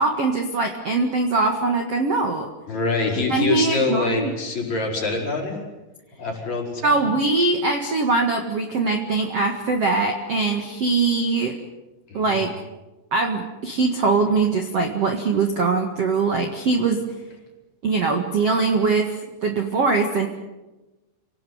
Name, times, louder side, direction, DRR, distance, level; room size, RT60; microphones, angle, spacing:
voice 1, 0.0-2.5 3.3-4.3 6.8-11.6 12.1-12.5 13.1-17.0 17.8-19.2 19.4-20.3, right 3 dB, 50° right, 4 dB, 2.1 m, -22 dB
voice 2, 2.7-5.6 6.2-7.1 12.1-12.4, left 3 dB, 40° left, -1 dB, 6.0 m, -25 dB
28.0 x 19.0 x 9.5 m, 1.1 s
omnidirectional pair, 5.0 m